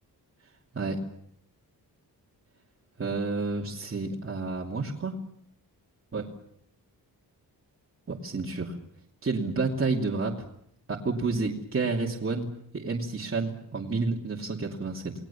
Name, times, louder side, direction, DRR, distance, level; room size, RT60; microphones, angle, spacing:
voice 1, 3.0-5.1 6.1-6.3 8.1-8.7 9.2-10.5 10.9-12.5 12.7-15.1, right 3 dB, 35° right, -3 dB, 2.9 m, -30 dB
29.5 x 20.5 x 7.2 m, 0.72 s
wide cardioid pair, 140°, 38 cm